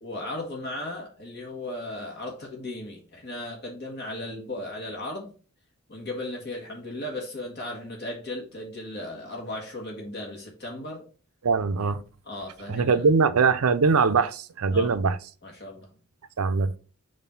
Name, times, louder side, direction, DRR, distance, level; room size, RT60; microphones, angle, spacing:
voice 1, 0.0-5.3 5.9-11.1 12.2-13.1 14.7-14.9 15.4-15.9, left 1 dB, 50° left, 1.5 m, -36 dB
voice 2, 11.4-12.0 12.7-15.2 16.4-16.7, right 4 dB, 80° right, 0.5 m, -22 dB
7.1 x 2.6 x 5.6 m
head